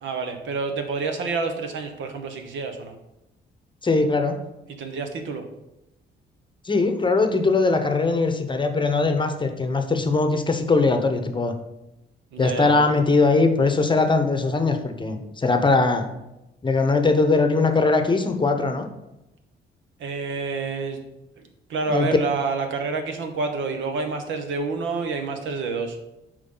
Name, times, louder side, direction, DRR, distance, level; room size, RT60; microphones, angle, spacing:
voice 1, 0.0-2.9 4.7-5.4 12.3-12.8 20.0-21.0 21.4-26.0, right 4 dB, 75° right, 6 dB, 1.1 m, -28 dB
voice 2, 3.8-4.4 6.6-11.5 12.4-16.1 16.6-18.9 21.9-22.2, left 3 dB, 25° left, 6 dB, 0.8 m, -21 dB
8.1 x 5.0 x 3.9 m, 0.93 s
cardioid pair, 90°, 20 cm